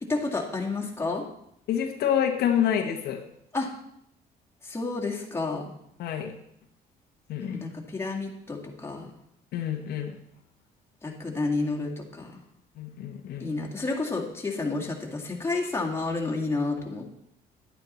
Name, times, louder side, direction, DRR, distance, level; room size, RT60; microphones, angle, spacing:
voice 1, 0.0-1.2 3.5-3.7 4.6-5.7 7.4-9.1 11.0-12.3 13.4-17.1, left 3 dB, 15° left, -1 dB, 2.1 m, -30 dB
voice 2, 1.7-3.2 6.0-6.3 7.3-7.6 9.5-10.2 12.8-13.5, left 9 dB, 75° left, 4 dB, 1.1 m, -27 dB
10.5 x 9.3 x 4.2 m, 0.75 s
cardioid pair, 110°, 17 cm